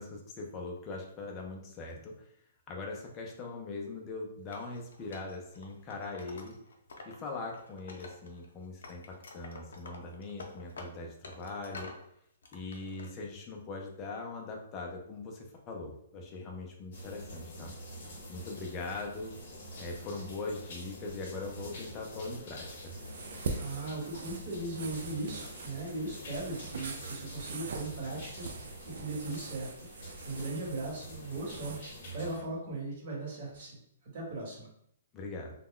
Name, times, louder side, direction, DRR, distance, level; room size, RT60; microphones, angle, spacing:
voice 1, 0.0-2.1 2.7-6.5 7.1-11.9 12.5-17.7 18.3-19.3 19.8-22.9 35.1-35.5, left 3 dB, 20° left, 0 dB, 0.4 m, -41 dB
Wood, 4.5-7.2 7.5-8.5 8.8-12.0 12.4-13.1, left 3 dB, 85° left, 0.5 m, -49 dB
sound 1, 16.9-32.4, equal, 45° left, 0.8 m, -46 dB
sound 2, 22.8-31.8, right 4 dB, 60° right, 0.4 m, -43 dB
voice 2, 23.5-34.7, right 2 dB, 40° right, -4 dB, 1.1 m, -39 dB
2.2 x 2.0 x 3.6 m, 0.71 s
hypercardioid pair, 165°, 0 cm